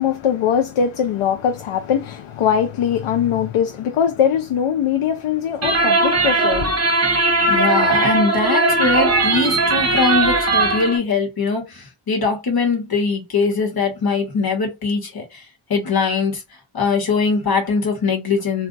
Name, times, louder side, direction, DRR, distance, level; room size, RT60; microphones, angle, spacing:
voice 1, 0.0-7.0, left 8 dB, 80° left, 0.6 m, -21 dB
sound 1, 5.6-11.0, right 2 dB, 30° right, 0.8 m, -18 dB
voice 2, 7.5-15.4 15.7-16.4 16.7-18.7, left 4 dB, 45° left, 1.2 m, -21 dB
2.4 x 2.3 x 3.8 m
wide cardioid pair, 175°, 50 cm